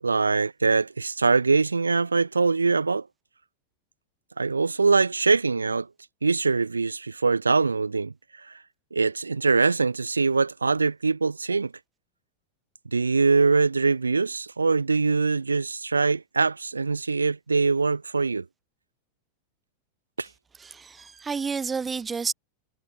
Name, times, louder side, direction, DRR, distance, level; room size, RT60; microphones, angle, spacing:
voice 1, 0.0-3.1 4.4-5.9 6.2-8.6 8.9-11.7 12.9-18.4 20.2-20.3, right 4 dB, 80° right, 6.6 m, -23 dB
voice 2, 20.6-22.3, right 5 dB, 15° right, 4.0 m, -30 dB
figure-of-eight pair, 90°, 0 cm